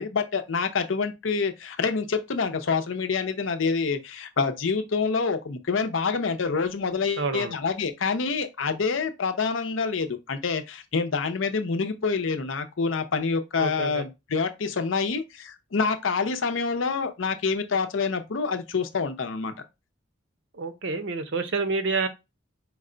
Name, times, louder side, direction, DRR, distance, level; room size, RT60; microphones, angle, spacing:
voice 1, 0.0-19.5, left 5 dB, 85° left, 0.6 m, -27 dB
voice 2, 7.2-7.5 13.6-14.1 20.5-22.1, right 4 dB, 70° right, 0.7 m, -28 dB
4.7 x 2.2 x 3.7 m
head